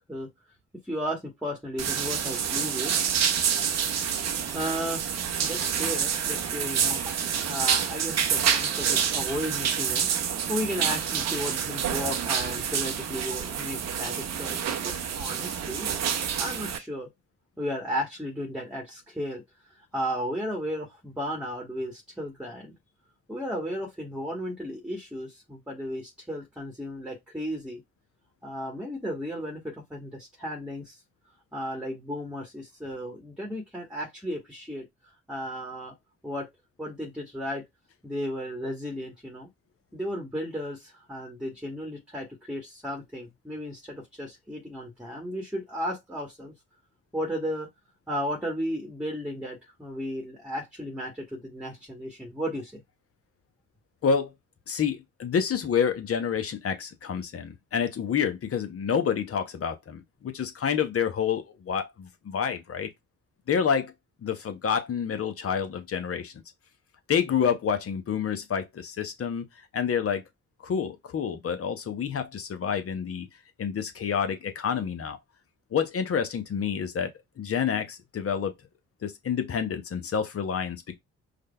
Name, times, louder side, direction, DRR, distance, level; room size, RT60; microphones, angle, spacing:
voice 1, 0.8-3.1 4.5-5.1 5.4-10.1 10.5-15.9 16.4-17.1 17.6-22.7 23.3-27.8 28.4-31.0 31.5-35.9 36.2-36.5 36.8-37.6 38.0-39.5 39.9-46.5 47.1-47.7 48.1-52.8, equal, 5° right, 1.2 m, -34 dB
sound 1, 1.8-16.8, right 8 dB, 50° right, 0.7 m, -28 dB
voice 2, 54.7-62.9 63.5-63.9 64.2-66.3 67.1-69.4 69.7-70.2 70.6-73.3 73.6-75.2 75.7-78.5 79.0-81.0, left 7 dB, 45° left, 0.8 m, -28 dB
4.9 x 2.2 x 2.3 m
hypercardioid pair, 40°, 34 cm